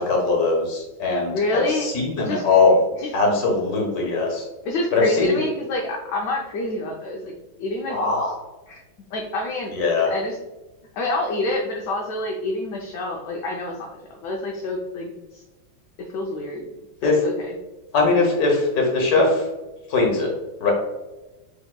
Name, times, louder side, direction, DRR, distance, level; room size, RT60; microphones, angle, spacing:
voice 1, 0.0-2.8 3.1-4.5 4.9-5.4 7.9-8.4 9.7-10.1 17.0-17.2 17.9-19.5 19.9-20.3 20.6-20.7, left 3 dB, 55° left, 0 dB, 1.5 m, -20 dB
voice 2, 1.3-1.9 2.2-2.4 3.0-3.1 4.6-7.3 7.6-8.0 8.7-8.8 9.1-9.7 10.1-10.4 10.9-15.4 16.1-16.7 17.0-17.6, left 2 dB, 70° left, 0 dB, 1.1 m, -27 dB
6.9 x 2.9 x 2.2 m, 1.1 s
omnidirectional pair, 2.2 m